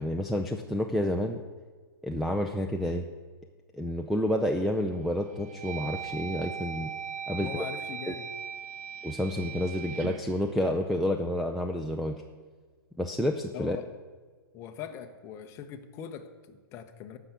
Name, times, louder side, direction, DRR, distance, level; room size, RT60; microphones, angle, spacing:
voice 1, 0.0-1.4 2.0-3.1 3.7-6.9 7.3-7.7 8.1-8.2 9.0-12.2 13.0-13.8, equal, ahead, 4 dB, 0.3 m, -29 dB
sound 1, 4.3-4.7 5.2-11.4, right 8 dB, 35° right, 0.7 m, -40 dB
voice 2, 7.3-8.3 13.5-13.9 14.5-17.2, left 8 dB, 20° left, 8 dB, 0.8 m, -41 dB
14.0 x 5.9 x 8.0 m, 1.5 s
hypercardioid pair, 155°, 12 cm